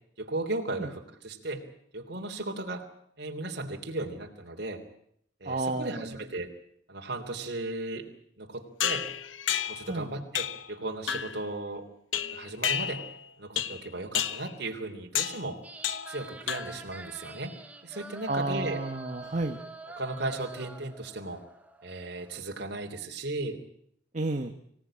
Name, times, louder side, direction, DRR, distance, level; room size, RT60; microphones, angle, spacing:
voice 1, 0.2-1.6 1.9-2.8 3.2-4.8 5.4-6.5 6.9-8.1 8.4-9.1 9.7-11.9 12.3-13.0 13.4-15.6 16.1-17.5 17.8-18.8 20.0-21.4 21.8-23.6, right 2 dB, 55° right, 2 dB, 3.2 m, -36 dB
voice 2, 5.4-6.1 9.9-10.1 18.3-19.6 24.1-24.5, right 2 dB, 40° right, 4 dB, 1.4 m, -31 dB
sound 1, 8.8-9.9 10.3-10.7 11.1-11.4 12.1-13.2 13.6-13.9 14.1-14.5 15.1-15.4 15.8-16.2 16.5-16.9, left 9 dB, 85° left, 1.1 m, -31 dB
sound 2, 15.6-22.4, right 2 dB, 10° right, 1.5 m, -46 dB
25.0 x 17.0 x 8.8 m, 0.70 s
head